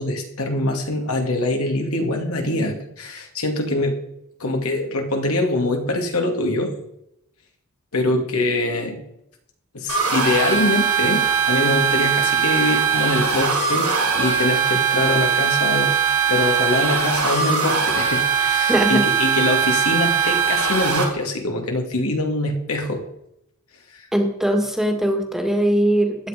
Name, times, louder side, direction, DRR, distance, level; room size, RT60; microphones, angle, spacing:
voice 1, 0.0-4.0 4.4-6.7 7.9-9.0 9.7-15.9 16.3-23.0 23.9-24.1, left 2 dB, 75° left, 3 dB, 2.4 m, -23 dB
sound 1, 9.9-21.0, right 7 dB, 80° right, 5.5 m, -20 dB
voice 2, 18.7-19.0 24.1-26.2, right 1 dB, ahead, 3 dB, 1.9 m, -20 dB
15.0 x 10.0 x 5.1 m, 0.79 s
head